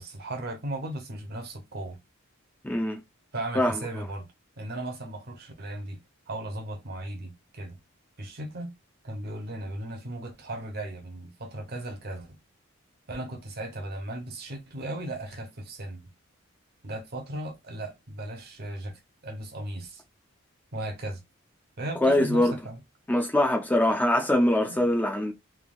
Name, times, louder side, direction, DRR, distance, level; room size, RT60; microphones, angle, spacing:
voice 1, 0.0-2.0 3.3-4.3 4.6-6.0 6.3-7.8 8.2-8.7 9.0-12.4 13.1-16.0 16.8-18.9 19.2-20.0 20.7-21.2 21.8-22.8 24.7-24.8, right 1 dB, 50° right, 0.7 m, -36 dB
voice 2, 2.6-3.0 3.6-3.7 22.0-22.5 23.1-25.3, left 1 dB, 10° left, 0.4 m, -23 dB
3.3 x 2.3 x 2.3 m
head